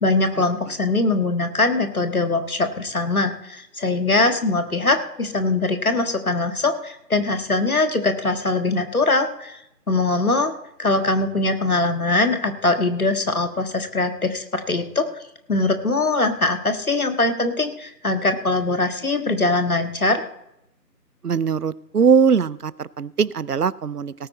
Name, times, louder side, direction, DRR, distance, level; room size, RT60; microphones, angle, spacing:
voice 1, 0.0-9.6 9.9-10.5 10.8-15.0 15.5-20.2, left 2 dB, 60° left, 7 dB, 1.7 m, -22 dB
voice 2, 21.2-24.1, right 6 dB, 70° right, 21 dB, 0.6 m, -20 dB
18.0 x 8.8 x 4.0 m, 0.79 s
figure-of-eight pair, 165°, 49 cm